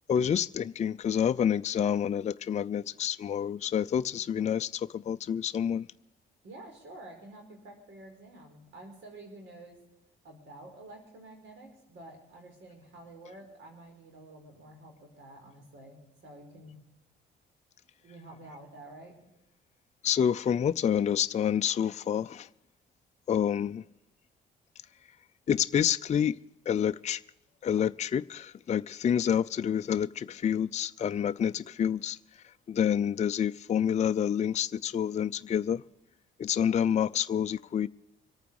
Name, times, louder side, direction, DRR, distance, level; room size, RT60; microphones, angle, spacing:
voice 1, 0.1-5.9 20.0-22.5 23.3-23.8 25.5-26.4 26.7-27.2 27.6-35.8 36.4-37.9, left 8 dB, 35° left, 0.4 m, -28 dB
voice 2, 6.4-9.8 10.2-16.8 18.0-19.2, right 1 dB, 75° right, 4.9 m, -49 dB
25.5 x 9.1 x 4.7 m
cardioid pair, 90°, 20 cm